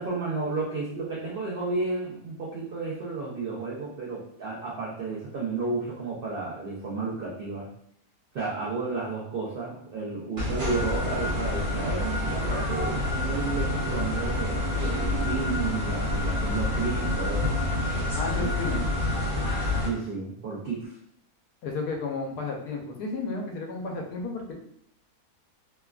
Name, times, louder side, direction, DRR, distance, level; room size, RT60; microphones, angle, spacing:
voice 1, 0.0-7.7 8.3-17.5 19.8-21.0, right 3 dB, 80° right, -6 dB, 0.5 m, -32 dB
sound 1, 10.4-19.9, left 1 dB, 50° right, 0.8 m, -28 dB
voice 2, 18.1-19.0 21.6-24.5, left 3 dB, 85° left, 1 dB, 1.1 m, -32 dB
3.0 x 2.2 x 2.3 m, 0.67 s
omnidirectional pair, 1.6 m